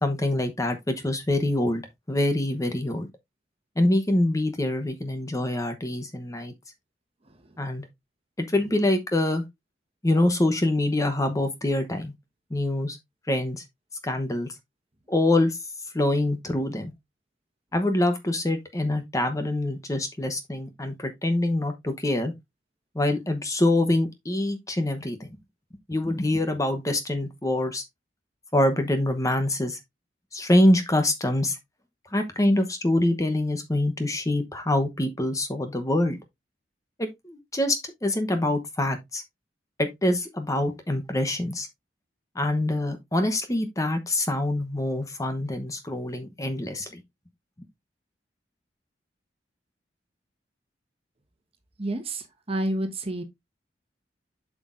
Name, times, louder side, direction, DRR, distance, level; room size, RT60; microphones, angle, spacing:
voice 1, 0.0-1.8 2.1-3.1 3.8-6.5 7.6-7.8 8.4-9.4 10.0-12.1 12.5-13.0 13.3-13.6 14.0-14.5 15.1-15.6 15.9-16.9 17.7-22.3 22.9-25.3 25.9-27.8 28.5-29.8 30.3-31.6 32.1-36.2 37.0-39.2 39.8-41.7 42.3-47.0, left 1 dB, 20° left, 1.0 m, -25 dB
voice 2, 51.8-53.2, right 1 dB, 35° right, 1.3 m, -29 dB
7.8 x 6.1 x 2.6 m
head